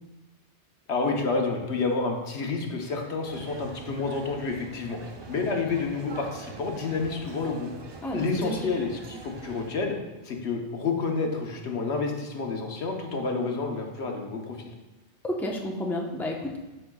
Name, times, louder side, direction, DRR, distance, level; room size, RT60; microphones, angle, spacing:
voice 1, 0.9-5.0 5.3-7.7 8.1-10.0 10.2-14.6, left 4 dB, 70° left, 2 dB, 1.2 m, -29 dB
sound 1, 3.2-9.7, right 4 dB, 40° right, 0.4 m, -44 dB
voice 2, 8.0-8.5 15.2-16.6, left 1 dB, ahead, -1 dB, 0.7 m, -31 dB
12.0 x 5.5 x 2.3 m, 1.1 s
omnidirectional pair, 1.2 m